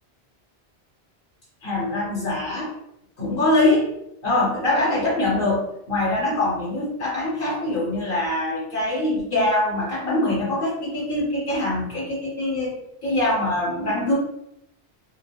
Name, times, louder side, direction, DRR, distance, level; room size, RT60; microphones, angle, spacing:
voice 1, 1.6-2.7 3.2-3.9 4.2-14.1, left 1 dB, 65° left, -5 dB, 0.7 m, -23 dB
2.3 x 2.1 x 2.7 m, 0.81 s
omnidirectional pair, 1.1 m